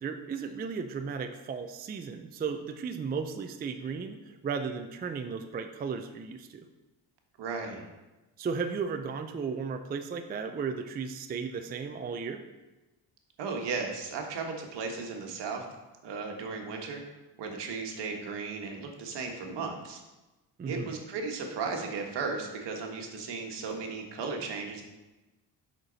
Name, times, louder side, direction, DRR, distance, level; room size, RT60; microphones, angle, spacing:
voice 1, 0.0-6.7 8.4-12.4 20.6-21.0, right 5 dB, 25° right, 7 dB, 0.3 m, -35 dB
voice 2, 7.4-7.8 13.4-15.6 16.0-17.0 17.4-20.0 20.7-24.8, right 4 dB, 70° right, 2 dB, 1.4 m, -35 dB
8.1 x 5.8 x 4.0 m, 1.1 s
cardioid pair, 145°, 44 cm